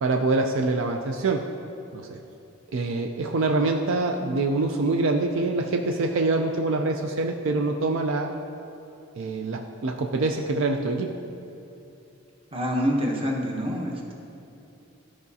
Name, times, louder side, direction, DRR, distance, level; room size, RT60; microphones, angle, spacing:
voice 1, 0.0-1.5 1.9-2.2 2.7-8.3 9.2-11.2, right 3 dB, 65° right, 3 dB, 0.4 m, -25 dB
voice 2, 12.5-14.1, equal, 25° right, 0 dB, 0.8 m, -26 dB
13.0 x 4.8 x 2.7 m, 2.9 s
head